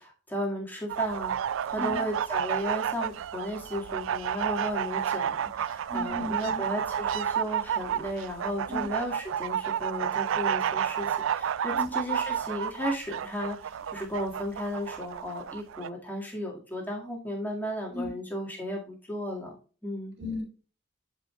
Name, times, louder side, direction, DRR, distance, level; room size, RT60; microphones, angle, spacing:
voice 1, 0.0-1.3 1.7-19.5 19.8-20.1, equal, 10° left, -1 dB, 2.0 m, -34 dB
sound 1, 0.9-15.9, right 9 dB, 80° right, 0.3 m, -31 dB
voice 2, 5.9-6.6 8.7-8.8 11.7-11.9 17.9-18.1 20.2-20.4, left 2 dB, 65° right, -1 dB, 4.1 m, -34 dB
11.0 x 5.1 x 2.3 m, 0.36 s
head